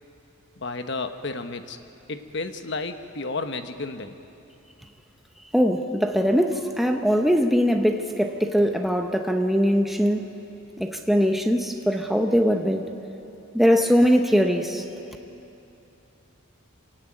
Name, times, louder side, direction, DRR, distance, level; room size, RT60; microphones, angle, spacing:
voice 1, 0.6-1.8 2.1-4.2, left 3 dB, 55° left, 8 dB, 1.1 m, -32 dB
voice 2, 5.5-10.3 10.8-12.9 13.5-14.8, equal, ahead, 4 dB, 0.9 m, -21 dB
26.5 x 17.0 x 9.1 m, 2.9 s
head